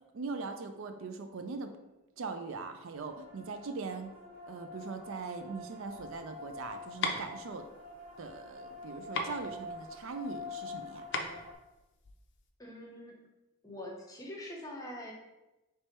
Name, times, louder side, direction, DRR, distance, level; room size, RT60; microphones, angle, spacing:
voice 1, 0.1-1.7 2.2-4.1 4.5-7.7 8.2-11.0, right 4 dB, 60° right, 7 dB, 0.4 m, -41 dB
sound 1, 2.9-11.5, left 3 dB, 40° right, 0.8 m, -47 dB
sound 2, 5.9-12.5, left 3 dB, 50° left, 0.5 m, -39 dB
voice 2, 12.6-13.2 13.6-15.1, left 1 dB, 15° left, -1 dB, 0.7 m, -44 dB
3.4 x 3.1 x 4.3 m, 1.0 s
head